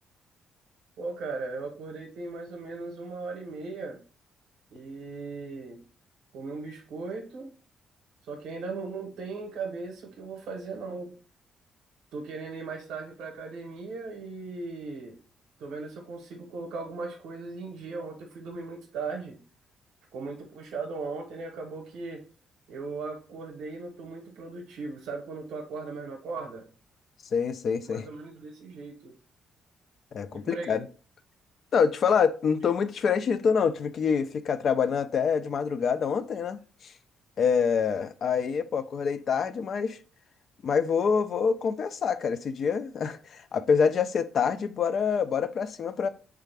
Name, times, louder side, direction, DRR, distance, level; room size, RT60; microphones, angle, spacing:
voice 1, 1.0-4.0 4.7-5.8 6.3-7.5 8.2-11.1 12.1-15.2 15.6-19.4 20.1-22.2 22.7-26.7 27.8-29.1 30.3-30.8, right 3 dB, 85° right, 0.7 m, -38 dB
voice 2, 27.3-28.1 30.1-30.8 31.7-36.6 37.4-40.0 40.6-46.1, left 6 dB, 55° left, 0.3 m, -26 dB
3.3 x 2.4 x 3.3 m
cardioid pair, 90°, 0 cm